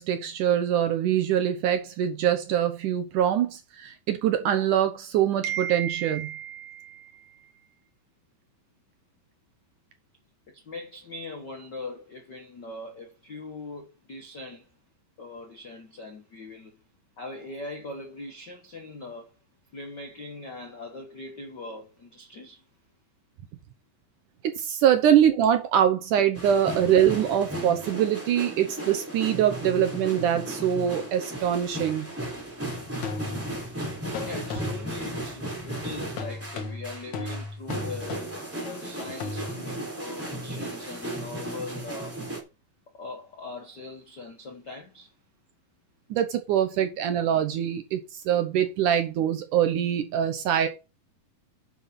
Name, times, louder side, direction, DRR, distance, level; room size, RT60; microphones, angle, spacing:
voice 1, 0.0-7.4 24.4-32.1 46.1-50.7, right 10 dB, 70° right, 2.2 m, -24 dB
voice 2, 10.5-14.7 15.2-16.7 17.2-19.3 19.7-22.7 34.2-38.3 38.8-42.2 42.9-45.1, left 2 dB, 75° left, 0.9 m, -41 dB
sound 1, 26.3-42.4, right 1 dB, 5° right, 2.9 m, -35 dB
sound 2, 31.3-31.4 33.0-33.7 34.1-35.1 36.2-39.5, left 4 dB, 60° left, 2.5 m, -36 dB
9.6 x 7.0 x 5.8 m
omnidirectional pair, 4.3 m